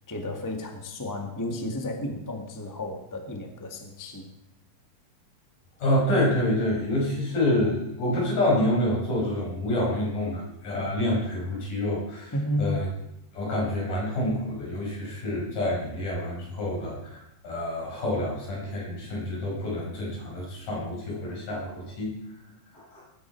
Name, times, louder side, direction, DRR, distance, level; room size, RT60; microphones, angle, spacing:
voice 1, 0.1-4.3 12.3-12.8, left 1 dB, 10° left, 3 dB, 1.0 m, -32 dB
voice 2, 5.8-12.9 13.3-22.1 22.7-23.0, left 1 dB, 75° left, -4 dB, 7.5 m, -27 dB
20.0 x 10.5 x 4.6 m, 0.81 s
omnidirectional pair, 3.8 m